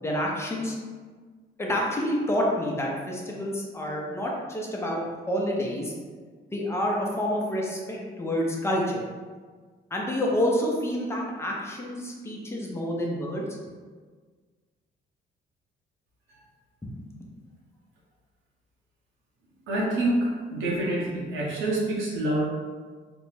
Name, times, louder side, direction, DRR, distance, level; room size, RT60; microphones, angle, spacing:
voice 1, 0.0-0.7 1.6-5.0 5.3-5.9 6.5-9.0 9.9-13.4, equal, 15° left, -2 dB, 0.6 m, -28 dB
voice 2, 19.7-22.4, right 1 dB, 90° right, -4 dB, 0.8 m, -26 dB
2.5 x 2.1 x 3.1 m, 1.5 s
cardioid pair, 90°, 20 cm